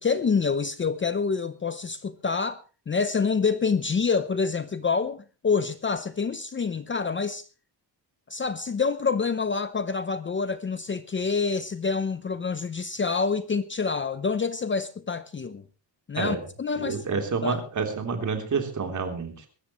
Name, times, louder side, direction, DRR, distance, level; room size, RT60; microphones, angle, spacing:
voice 1, 0.0-7.5 8.3-15.7 16.1-17.7, left 5 dB, 30° left, 0.7 m, -27 dB
voice 2, 16.8-19.3, right 5 dB, 45° right, 3.3 m, -28 dB
23.5 x 13.0 x 3.1 m
wide cardioid pair, 165°, 42 cm